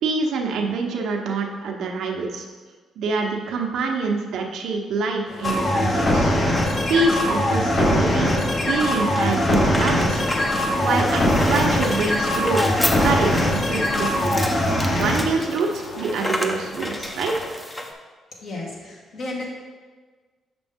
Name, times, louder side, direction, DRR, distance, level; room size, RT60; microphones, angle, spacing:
voice 1, 0.0-2.5 3.0-6.3 6.9-10.2 10.8-14.5 14.9-17.3, right 3 dB, 75° right, 1 dB, 0.9 m, -25 dB
sound 1, 5.3-17.5, left 2 dB, 80° left, 1.4 m, -39 dB
sound 2, 5.4-15.2, left 1 dB, 35° left, 0.9 m, -21 dB
sound 3, 8.8-17.9, left 1 dB, 15° left, 0.7 m, -31 dB
voice 2, 18.4-19.5, left 2 dB, 65° left, -3 dB, 1.9 m, -33 dB
6.0 x 6.0 x 3.6 m, 1.4 s
cardioid pair, 90°, 0 cm